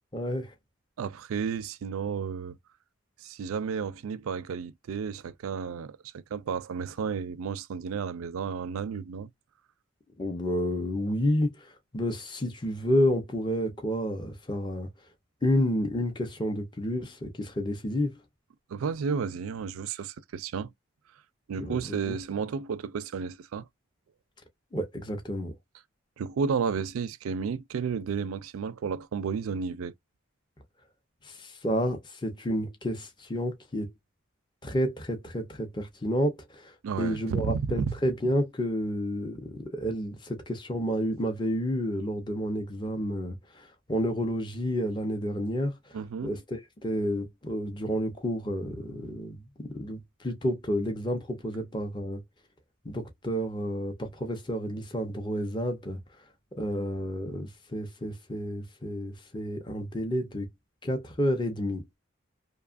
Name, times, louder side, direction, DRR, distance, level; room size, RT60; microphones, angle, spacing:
voice 1, 0.1-0.5 10.2-14.9 15.4-18.2 21.6-22.2 24.7-25.5 31.2-33.9 34.6-45.8 46.2-52.2 52.8-56.0 56.6-60.5 60.8-62.0, equal, 20° left, 0.6 m, -30 dB
voice 2, 1.0-2.6 3.2-9.3 18.7-20.7 21.5-23.7 26.2-29.9 36.8-37.9 45.9-46.4, right 6 dB, 90° right, 0.4 m, -32 dB
2.8 x 2.3 x 2.4 m
head